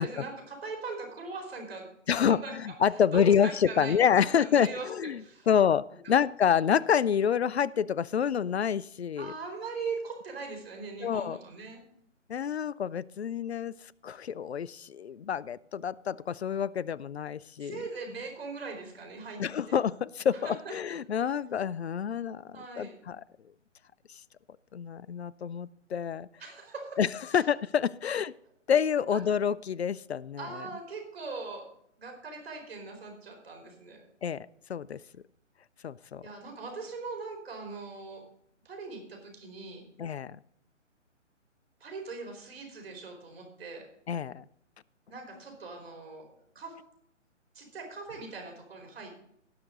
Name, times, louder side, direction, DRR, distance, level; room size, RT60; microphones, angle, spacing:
voice 1, 0.0-4.9 5.2-5.5 6.0-6.2 9.2-11.8 17.6-19.8 20.4-20.7 22.5-22.9 26.4-27.0 27.3-27.4 29.1-29.2 30.4-31.7 32.0-34.1 36.2-38.2 38.6-39.8 41.8-43.8 45.1-46.2 46.5-46.8 47.5-49.1, right 4 dB, 50° right, 2 dB, 4.6 m, -40 dB
voice 2, 2.1-9.3 11.0-11.4 12.3-13.7 14.0-17.9 19.4-23.2 24.7-26.3 27.0-28.3 28.7-30.5 34.2-35.0 35.8-36.2 40.0-40.4 44.1-44.4, left 8 dB, 60° left, 22 dB, 0.5 m, -28 dB
18.0 x 6.7 x 3.9 m, 0.71 s
figure-of-eight pair, 140°, 38 cm